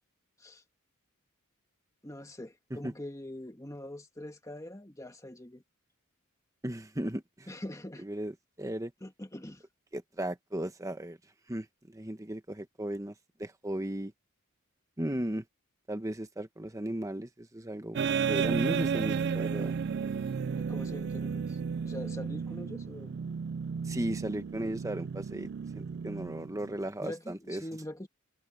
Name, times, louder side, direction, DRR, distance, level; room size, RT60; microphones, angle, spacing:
voice 1, 2.0-5.6 7.5-8.0 9.0-9.6 20.6-23.1 27.0-28.1, left 1 dB, 15° left, 1.5 m, -43 dB
voice 2, 6.6-7.5 8.0-8.9 9.9-11.2 11.5-13.1 13.4-14.1 15.0-15.4 15.9-19.8 23.8-25.5 25.7-27.6, right 1 dB, 15° right, 1.1 m, -36 dB
sound 1, 17.9-26.9, right 6 dB, 50° right, 0.3 m, -33 dB
head